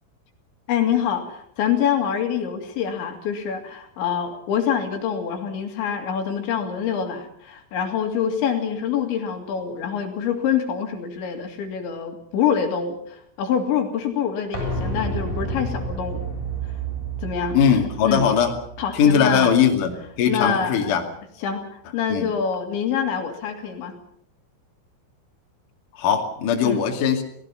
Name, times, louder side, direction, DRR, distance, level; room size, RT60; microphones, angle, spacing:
voice 1, 0.7-16.2 17.2-17.6 18.0-18.3 18.8-19.6 20.3-20.9 21.4-21.7 21.9-23.9 26.6-26.8, left 8 dB, 70° left, 4 dB, 4.3 m, -25 dB
sound 1, 14.5-20.2 20.5-20.6, right 3 dB, 10° right, 7.1 m, -31 dB
voice 2, 17.5-18.5 18.9-21.0 22.1-22.3 26.0-27.2, left 7 dB, 50° left, 2 dB, 3.4 m, -20 dB
29.0 x 18.5 x 5.8 m, 0.68 s
omnidirectional pair, 5.8 m